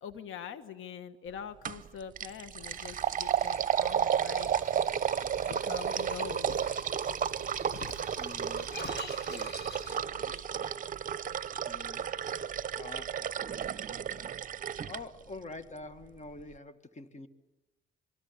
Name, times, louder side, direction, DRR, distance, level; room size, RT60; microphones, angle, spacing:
voice 1, 0.0-4.5 5.5-6.6, left 8 dB, 80° left, 1.3 m, -44 dB
sound 1, 1.6-1.9 2.2-15.0, right 8 dB, 40° right, 0.8 m, -32 dB
sound 2, 2.6-10.0, right 2 dB, 15° left, 4.2 m, -52 dB
Shatter, 4.9-5.7 6.5-6.8 7.7-10.3, left 6 dB, 55° left, 1.5 m, -47 dB
voice 2, 8.2-10.7 11.7-12.1 12.8-13.4 14.8-17.3, left 3 dB, 35° left, 2.0 m, -47 dB
26.5 x 23.0 x 8.7 m
cardioid pair, 90°, 20 cm